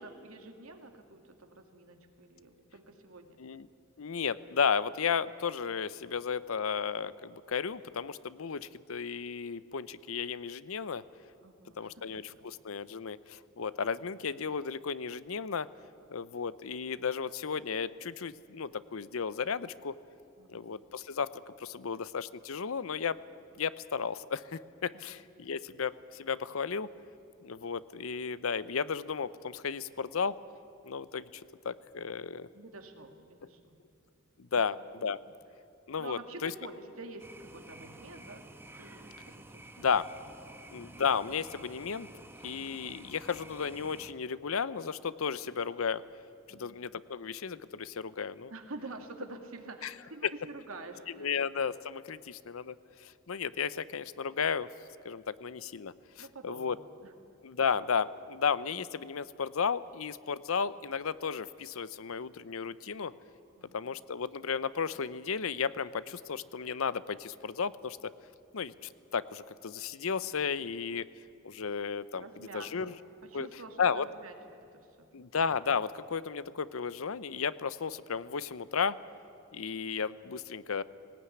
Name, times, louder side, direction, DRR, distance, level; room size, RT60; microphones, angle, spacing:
voice 1, 0.0-3.4 11.4-11.9 12.2-12.4 20.4-20.7 32.5-33.8 36.0-38.4 38.8-39.7 40.5-40.6 46.5-46.8 48.5-51.3 56.2-57.1 63.6-63.9 70.6-70.7 72.2-72.9 73.2-75.1, right 2 dB, 90° right, 5 dB, 2.2 m, -48 dB
voice 2, 4.0-11.0 11.8-15.7 16.1-20.0 20.5-23.2 23.6-26.9 27.4-30.4 30.8-32.5 34.4-35.2 35.9-36.5 39.8-40.1 40.7-42.1 42.4-46.0 46.5-48.5 49.8-49.9 50.2-50.3 51.1-52.8 53.0-54.7 55.0-56.8 57.4-63.1 63.7-68.1 68.5-71.1 71.4-72.2 72.5-72.9 73.3-73.5 73.8-74.1 75.1-79.0 79.5-80.8, left 6 dB, 75° left, 17 dB, 0.7 m, -34 dB
sound 1, 37.2-44.1, right 1 dB, 10° right, 1.1 m, -51 dB
18.5 x 18.5 x 9.8 m, 2.6 s
head